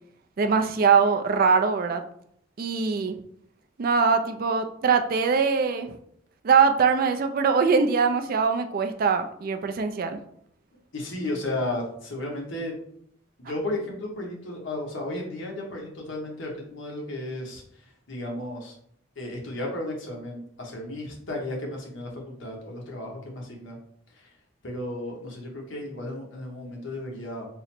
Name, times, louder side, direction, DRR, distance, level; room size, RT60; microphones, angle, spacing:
voice 1, 0.4-2.0 2.6-3.2 3.8-6.0 6.4-10.2, right 5 dB, 45° right, 7 dB, 0.3 m, -22 dB
voice 2, 10.9-12.7 13.4-17.8 18.1-18.7 19.2-23.8 24.2-24.3 24.6-27.5, left 1 dB, 70° left, -1 dB, 1.0 m, -34 dB
3.7 x 2.1 x 4.3 m, 0.68 s
head